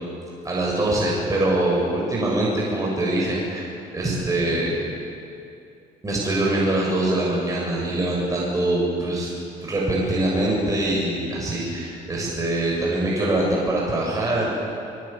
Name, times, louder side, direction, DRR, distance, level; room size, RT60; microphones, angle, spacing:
voice 1, 0.4-4.8 6.0-9.3 9.6-14.5, right 1 dB, 20° right, -4 dB, 7.1 m, -23 dB
23.5 x 23.5 x 8.9 m, 2.6 s
cardioid pair, 110°, 17 cm